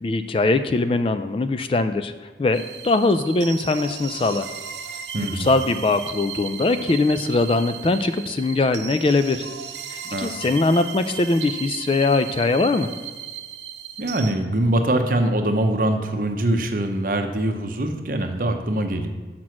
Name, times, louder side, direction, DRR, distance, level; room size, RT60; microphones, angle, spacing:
voice 1, 0.0-4.5 5.2-9.5 9.9-12.9, left 3 dB, 30° left, 10 dB, 0.3 m, -21 dB
sound 1, 2.5-14.3, right 8 dB, 80° right, 0.7 m, -36 dB
voice 2, 5.1-5.5 10.0-10.3 14.0-19.1, right 1 dB, 50° right, 5 dB, 0.8 m, -23 dB
6.1 x 5.9 x 6.3 m, 1.4 s
head